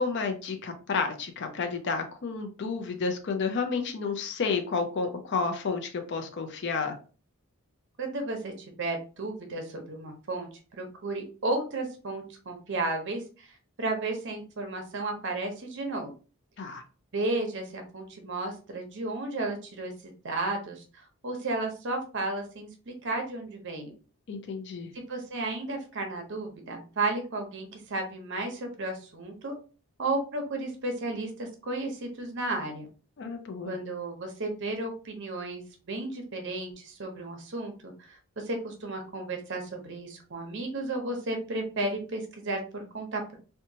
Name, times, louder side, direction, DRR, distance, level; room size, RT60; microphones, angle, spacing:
voice 1, 0.0-7.0 16.6-16.8 24.3-24.9 33.2-33.8, left 4 dB, 50° left, 6 dB, 0.4 m, -31 dB
voice 2, 8.0-13.5 13.8-16.1 17.1-23.9 24.9-29.5 30.0-32.9 33.7-43.4, right 2 dB, 55° right, 3 dB, 0.7 m, -33 dB
2.9 x 2.2 x 2.7 m, 0.37 s
head